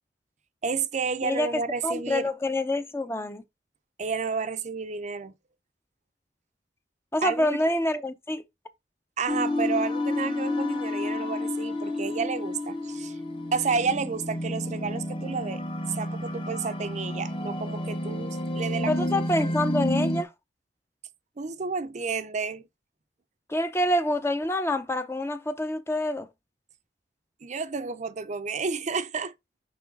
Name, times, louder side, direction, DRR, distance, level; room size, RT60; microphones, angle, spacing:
voice 1, 0.6-2.3 4.0-5.3 7.2-7.6 9.2-13.2 13.5-15.6 15.9-18.9 21.4-22.6 27.4-29.3, right 5 dB, 40° right, 0.5 m, -31 dB
voice 2, 1.2-3.4 7.1-8.4 18.9-20.3 23.5-26.3, left 1 dB, 15° left, 0.6 m, -27 dB
sound 1, 9.3-20.2, left 1 dB, 30° left, 1.0 m, -30 dB
6.0 x 4.8 x 4.0 m
head